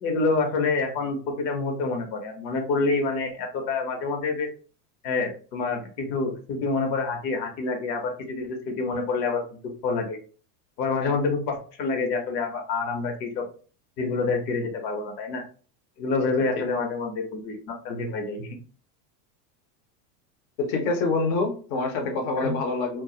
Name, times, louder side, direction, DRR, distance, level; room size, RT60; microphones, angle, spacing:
voice 1, 0.0-4.5 5.0-10.2 10.8-13.4 14.0-15.4 16.0-18.6 22.4-22.5, left 3 dB, 85° left, 4 dB, 0.9 m, -27 dB
voice 2, 20.6-23.0, left 3 dB, 30° left, 3 dB, 0.3 m, -26 dB
2.3 x 2.0 x 2.7 m, 0.40 s
supercardioid pair, 130°, 50 cm